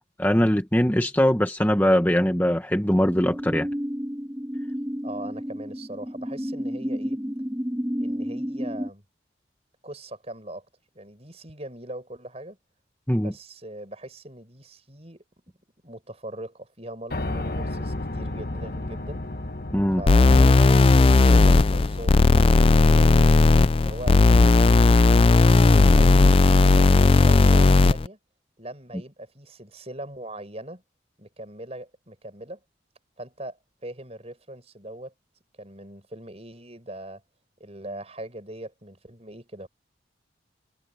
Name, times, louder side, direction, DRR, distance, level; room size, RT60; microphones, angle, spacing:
voice 1, 0.0-3.7 13.1-13.3 19.7-20.0, equal, 10° left, 1.2 m, -21 dB
sound 1, 3.0-8.9, equal, 10° right, 4.8 m, -31 dB
voice 2, 5.0-7.2 8.0-9.0 9.8-10.7 10.9-12.6 13.1-15.2 15.8-19.2 19.9-23.2 23.8-24.4 25.9-28.2 28.6-30.8 31.2-32.6 33.2-35.1 35.6-37.2 37.6-39.7, right 1 dB, 35° right, 5.8 m, -40 dB
Piano, 17.1-25.1, left 1 dB, 50° left, 1.3 m, -35 dB
sound 2, 20.1-28.1, left 3 dB, 30° left, 0.3 m, -16 dB
head